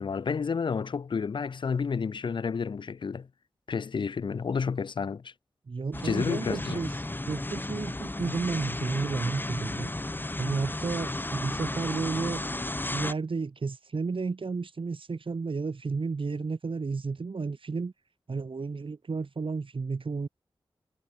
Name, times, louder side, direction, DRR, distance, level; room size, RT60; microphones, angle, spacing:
voice 1, 0.0-3.3 3.7-5.3 6.0-6.8, left 5 dB, 55° left, 0.4 m, -30 dB
voice 2, 5.7-9.9 10.4-12.4 12.9-17.9 18.3-20.3, right 4 dB, 60° right, 1.6 m, -32 dB
sound 1, 5.9-13.1, left 2 dB, 20° left, 0.9 m, -34 dB
cardioid pair, 45°, 10 cm